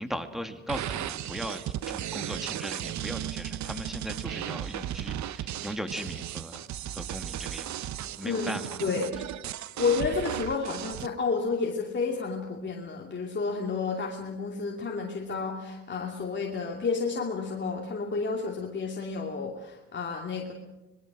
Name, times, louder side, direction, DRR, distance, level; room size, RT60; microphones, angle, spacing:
voice 1, 0.0-6.6 6.9-7.9 8.2-8.6, equal, ahead, 8 dB, 2.4 m, -38 dB
sound 1, 0.7-11.1, right 11 dB, 70° right, 0.9 m, -35 dB
voice 2, 8.2-9.2 9.8-20.5, left 4 dB, 40° left, 0 dB, 2.7 m, -31 dB
25.5 x 21.5 x 6.3 m, 1.0 s
cardioid pair, 90°, 30 cm